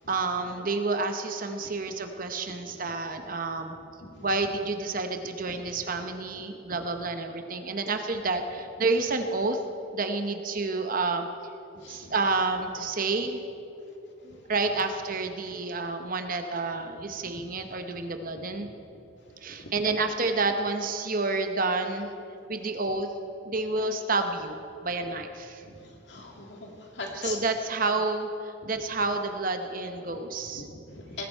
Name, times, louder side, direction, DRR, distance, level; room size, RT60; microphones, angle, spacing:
voice 1, 0.1-3.8 4.2-9.6 9.9-11.3 11.9-13.4 14.2-18.7 19.4-22.1 22.5-23.1 23.4-25.6 27.2-30.6, right 3 dB, 45° right, 6 dB, 0.9 m, -29 dB
voice 2, 11.7-12.1 14.3-14.5 17.3-17.5 18.4-18.5 19.3-19.7 25.6-27.4 30.5-31.3, left 3 dB, 60° left, 0 dB, 2.4 m, -41 dB
20.0 x 15.0 x 4.5 m, 2.8 s
head